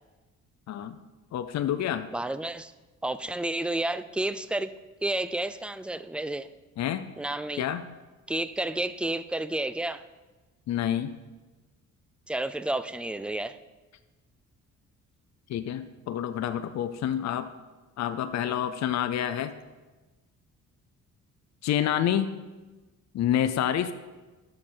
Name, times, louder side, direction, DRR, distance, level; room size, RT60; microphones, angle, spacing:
voice 1, 1.3-2.1 6.8-7.1 7.6-7.9 10.7-11.1 15.5-17.5 18.0-19.5 21.6-22.3 23.1-23.9, left 10 dB, 60° left, 10 dB, 0.6 m, -28 dB
voice 2, 2.1-2.7 3.0-4.7 5.0-6.5 7.2-7.6 8.3-10.0 12.3-13.6, right 1 dB, 5° right, 13 dB, 0.4 m, -31 dB
12.5 x 6.5 x 4.5 m, 1.2 s
cardioid pair, 90°, 30 cm